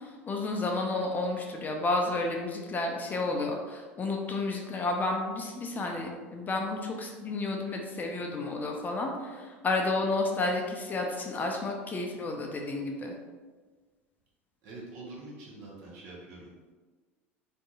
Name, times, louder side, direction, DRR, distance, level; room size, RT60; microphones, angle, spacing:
voice 1, 0.0-13.1, left 2 dB, 25° left, 1 dB, 0.4 m, -31 dB
voice 2, 14.6-16.5, right 2 dB, 55° right, -4 dB, 0.9 m, -45 dB
2.6 x 2.6 x 2.4 m, 1.4 s
figure-of-eight pair, 75°, 7 cm